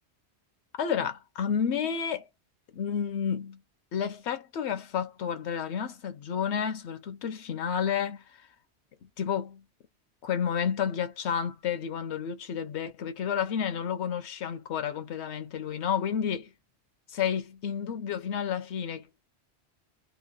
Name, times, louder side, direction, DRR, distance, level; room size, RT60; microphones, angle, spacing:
voice 1, 0.8-2.2 2.7-3.6 3.9-8.2 9.0-9.6 10.2-16.5 17.1-19.2, left 7 dB, 80° left, 1.0 m, -31 dB
3.0 x 2.0 x 2.3 m
omnidirectional pair, 1.1 m